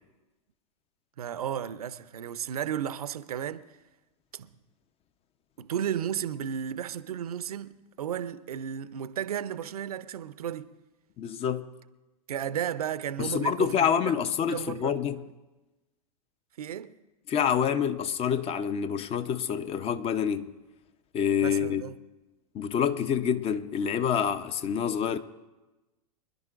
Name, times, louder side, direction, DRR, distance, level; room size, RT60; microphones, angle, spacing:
voice 1, 1.2-3.8 4.3-4.5 5.6-10.7 12.3-14.2 14.4-15.1 16.6-16.9 21.4-22.0, right 9 dB, 75° right, 0.7 m, -34 dB
voice 2, 11.2-11.7 13.2-15.2 17.3-20.5 21.1-21.8 22.5-25.2, left 8 dB, 30° left, 0.8 m, -27 dB
25.5 x 11.0 x 2.5 m
hypercardioid pair, 95°, 19 cm